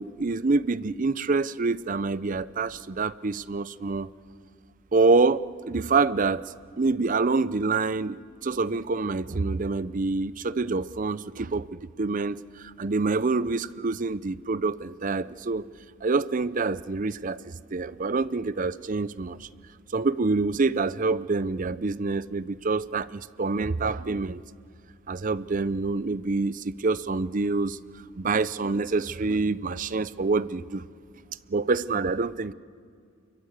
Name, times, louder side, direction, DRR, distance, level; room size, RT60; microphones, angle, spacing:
voice 1, 0.0-4.1 4.9-11.7 12.0-15.6 16.0-19.5 19.9-24.4 25.1-27.8 28.2-30.8 31.5-32.5, right 3 dB, 40° right, 17 dB, 0.6 m, -26 dB
29.0 x 22.5 x 8.1 m, 2.2 s
head